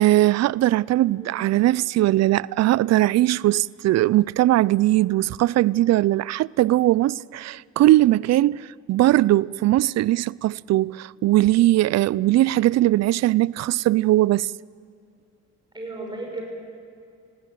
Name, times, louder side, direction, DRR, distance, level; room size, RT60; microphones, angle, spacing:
voice 1, 0.0-14.5, right 15 dB, 60° right, 0.4 m, -20 dB
voice 2, 1.1-1.4 15.7-16.4, right 2 dB, 15° right, 6.4 m, -35 dB
19.5 x 17.0 x 9.2 m
cardioid pair, 90°, 30 cm